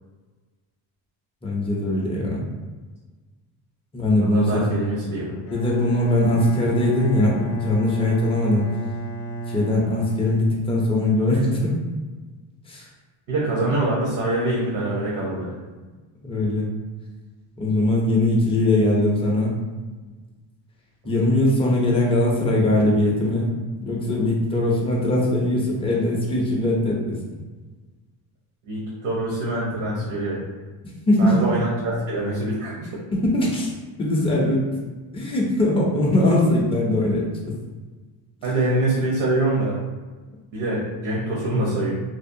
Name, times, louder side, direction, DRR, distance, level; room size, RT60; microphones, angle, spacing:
voice 1, 1.4-2.4 3.9-4.6 5.5-8.7 9.5-11.7 12.7-12.8 16.2-16.7 17.6-19.6 21.0-23.5 23.8-27.2 31.1-31.3 33.1-33.7 34.0-34.6 35.1-37.5, left 1 dB, 15° left, -4 dB, 0.4 m, -21 dB
voice 2, 4.2-5.4 11.2-11.5 13.3-15.5 28.7-30.4 31.2-32.9 38.4-39.8 40.5-41.9, right 1 dB, 70° right, -6 dB, 0.8 m, -24 dB
Bowed string instrument, 5.4-10.9, right 2 dB, 65° left, 0.6 m, -33 dB
2.6 x 2.0 x 2.5 m, 1.3 s
cardioid pair, 145°, 46 cm